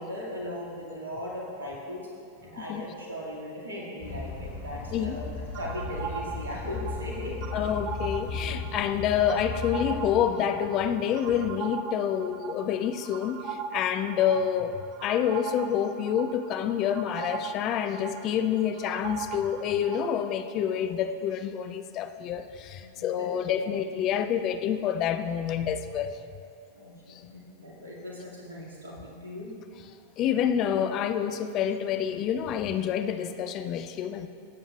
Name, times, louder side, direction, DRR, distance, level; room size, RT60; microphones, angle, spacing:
voice 1, 0.0-2.0 2.4-5.3 5.5-7.4 22.8-23.3 23.6-23.7 26.7-29.5, left 1 dB, 70° right, -4 dB, 2.1 m, -38 dB
sound 1, 4.0-10.4, left 3 dB, 60° left, 1.5 m, -36 dB
sound 2, 5.5-20.3, right 6 dB, 35° right, 0.4 m, -40 dB
voice 2, 7.5-26.2 27.1-27.2 30.2-34.3, left 9 dB, 35° left, 9 dB, 0.4 m, -28 dB
16.0 x 7.1 x 2.4 m, 2.5 s
figure-of-eight pair, 90°, 0 cm